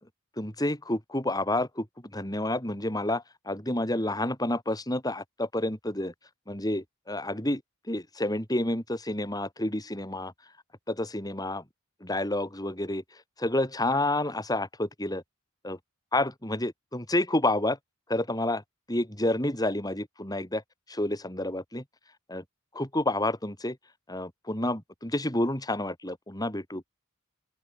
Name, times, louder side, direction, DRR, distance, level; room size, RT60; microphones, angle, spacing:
voice 1, 0.4-1.9 2.1-6.1 6.5-7.6 7.9-10.3 10.9-11.6 12.0-13.0 13.4-15.2 15.6-15.8 16.1-17.8 18.1-18.6 18.9-20.6 20.9-21.8 22.3-22.4 22.7-23.8 24.1-26.9, left 1 dB, 20° left, 5.0 m, -29 dB
open air
head